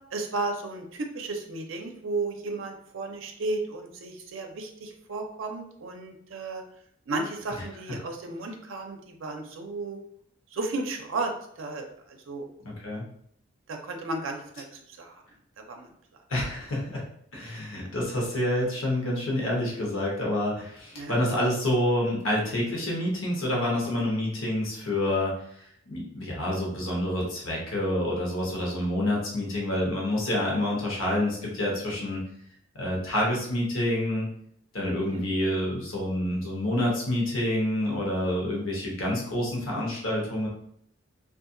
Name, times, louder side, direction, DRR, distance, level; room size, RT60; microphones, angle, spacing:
voice 1, 0.1-6.6 7.1-10.0 10.5-11.3 11.6-12.5 13.7-14.7 15.0-15.2 15.6-15.9 21.0-21.2 35.1-35.2 39.8-39.9, right 3 dB, 75° right, 3 dB, 0.5 m, -34 dB
voice 2, 12.6-13.0 16.3-17.0 17.3-25.3 25.9-32.2 32.7-34.3 34.7-40.5, left 1 dB, 90° left, -3 dB, 0.9 m, -28 dB
2.7 x 2.4 x 2.5 m, 0.67 s
head